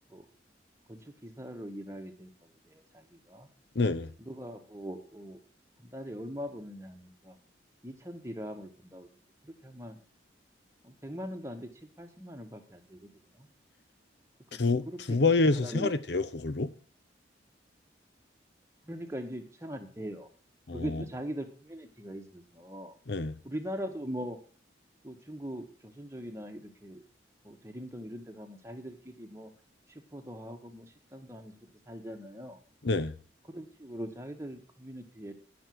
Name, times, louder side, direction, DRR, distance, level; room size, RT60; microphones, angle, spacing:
voice 1, 0.9-2.3 2.7-3.5 4.2-5.4 5.8-7.4 7.8-9.1 9.4-10.0 10.8-11.7 12.0-13.1 13.4-13.5 14.5-14.6 14.9-15.2 15.6-15.9 18.9-20.3 20.7-22.9 23.4-24.4 25.0-27.0 27.4-29.5 29.9-31.5 31.9-32.6 33.5-35.3, equal, 15° right, 1.4 m, -41 dB
voice 2, 3.8-4.1 14.5-16.7 20.7-21.0 23.1-23.3 32.8-33.1, left 3 dB, 65° left, 0.7 m, -27 dB
10.0 x 6.1 x 7.7 m
head